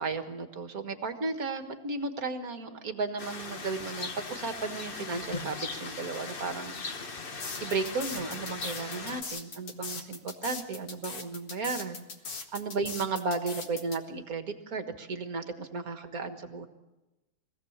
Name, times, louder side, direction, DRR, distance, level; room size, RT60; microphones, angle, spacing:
voice 1, 0.0-6.7 7.6-12.0 12.5-16.7, right 4 dB, 45° right, 7 dB, 1.8 m, -34 dB
Birds Rain and fountain (Outside), 3.2-9.2, left 4 dB, 35° left, 0.9 m, -39 dB
sound 1, 7.4-14.0, left 4 dB, 75° left, 2.6 m, -40 dB
24.0 x 16.5 x 7.2 m, 1.0 s
omnidirectional pair, 2.4 m